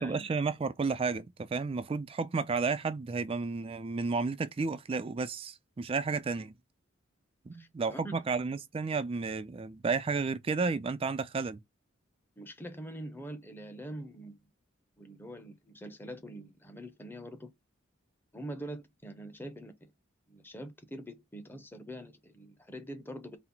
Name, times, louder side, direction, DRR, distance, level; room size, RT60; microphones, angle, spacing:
voice 1, 0.0-6.5 7.5-11.6, right 4 dB, 30° right, 0.3 m, -32 dB
voice 2, 7.5-8.3 12.4-14.4 15.0-17.5 18.3-19.7 20.3-23.4, right 1 dB, 10° left, 0.7 m, -44 dB
4.2 x 2.0 x 3.9 m
head